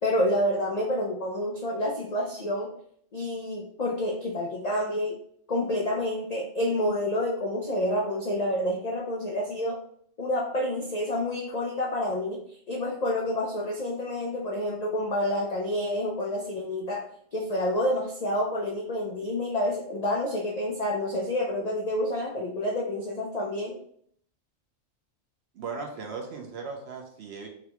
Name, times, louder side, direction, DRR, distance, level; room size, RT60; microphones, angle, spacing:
voice 1, 0.0-2.7 3.1-5.2 5.5-9.8 10.2-23.8, left 1 dB, 75° left, -3 dB, 0.3 m, -28 dB
voice 2, 25.5-27.5, right 4 dB, 60° right, 2 dB, 0.8 m, -37 dB
4.0 x 2.2 x 2.8 m, 0.65 s
omnidirectional pair, 1.4 m